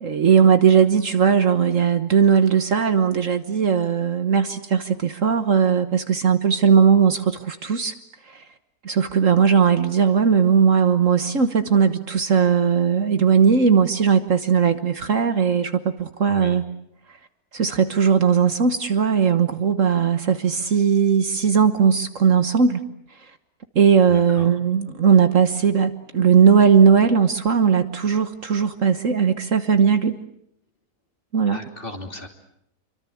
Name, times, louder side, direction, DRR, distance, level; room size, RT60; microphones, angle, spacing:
voice 1, 0.0-7.9 8.3-8.4 8.8-16.6 17.5-22.8 23.7-30.2 31.3-31.6, right 6 dB, 55° right, 9 dB, 1.6 m, -18 dB
voice 2, 16.3-16.6 24.1-24.5 31.5-32.3, left 1 dB, 35° left, 4 dB, 3.2 m, -37 dB
27.0 x 24.5 x 8.6 m, 0.75 s
omnidirectional pair, 1.7 m